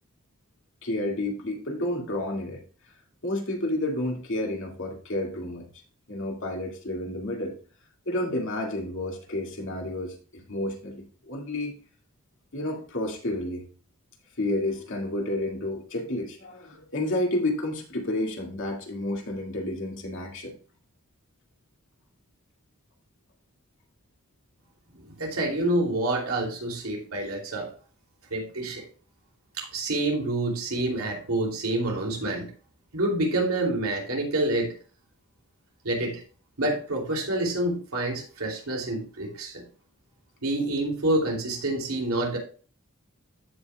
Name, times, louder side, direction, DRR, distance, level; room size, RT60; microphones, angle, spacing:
voice 1, 0.8-2.6 3.2-5.7 6.1-7.6 8.1-11.7 12.5-13.7 14.4-20.5, left 1 dB, 60° left, 1 dB, 2.2 m, -30 dB
voice 2, 25.1-27.7 28.3-28.8 29.6-32.5 32.9-34.7 35.8-36.2 36.6-39.6 40.4-42.4, right 2 dB, 80° right, -1 dB, 2.8 m, -27 dB
15.0 x 5.6 x 2.3 m, 0.39 s
head